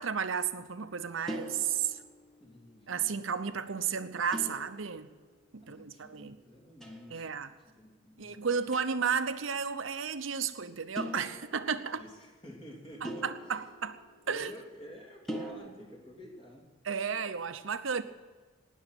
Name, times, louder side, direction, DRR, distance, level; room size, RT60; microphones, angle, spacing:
voice 1, 0.0-2.0 2.9-5.1 5.5-6.4 7.1-7.5 8.2-12.0 13.0-14.0 14.3-14.5 16.8-18.0, right 6 dB, 80° right, 0.8 m, -33 dB
sound 1, 1.3-2.6 4.3-5.4 6.8-7.3 8.7-9.2 11.0-12.1 13.0-14.7 15.3-15.5, equal, ahead, 1.3 m, -42 dB
voice 2, 2.4-3.2 3.7-4.6 5.6-7.4 7.6-8.5 11.9-13.6 14.3-16.7, equal, 25° left, 2.9 m, -51 dB
19.0 x 6.5 x 9.2 m
head